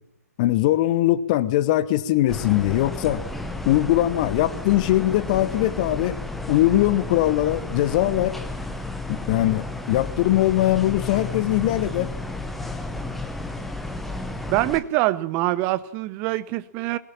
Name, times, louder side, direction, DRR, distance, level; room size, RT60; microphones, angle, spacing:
voice 1, 0.4-3.2 3.6-6.2 6.5-8.4 9.1-12.1, left 14 dB, 25° left, 1.1 m, -21 dB
sound 1, 2.3-14.8, left 2 dB, ahead, 1.1 m, -32 dB
voice 2, 14.5-17.0, right 17 dB, 20° right, 0.8 m, -24 dB
21.5 x 17.5 x 7.4 m
figure-of-eight pair, 135°, 9 cm